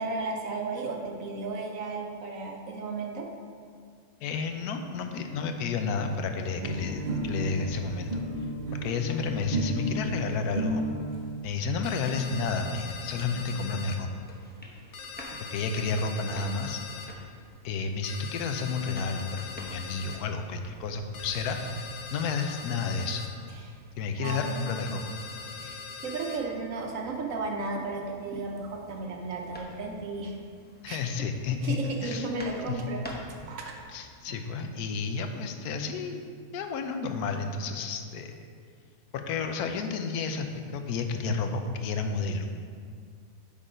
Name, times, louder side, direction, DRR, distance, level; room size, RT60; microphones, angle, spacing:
voice 1, 0.0-3.3 23.6-23.7 24.2-24.7 25.5-30.4 30.9-31.0 31.6-33.0 33.4-33.7 34.3-34.4, right 3 dB, 65° right, 1 dB, 1.1 m, -34 dB
voice 2, 4.2-8.2 8.7-10.8 11.4-14.1 15.5-16.8 17.6-23.2 24.0-25.0 30.8-32.3 32.7-32.8 33.9-36.2 36.5-38.4 39.1-40.5 40.7-42.5, left 4 dB, 90° left, 6 dB, 1.1 m, -31 dB
sound 1, 6.6-11.2 12.1-12.2 12.4-12.5 12.7-12.8 13.0-13.7, right 1 dB, 45° right, 0.7 m, -33 dB
sound 2, 11.8-14.0 14.9-17.1 18.0-20.2 21.1-23.3 24.2-26.4, left 5 dB, 60° left, 0.9 m, -42 dB
sound 3, 13.9-33.8, equal, 15° left, 0.3 m, -50 dB
8.2 x 3.8 x 5.0 m, 2.1 s
omnidirectional pair, 1.6 m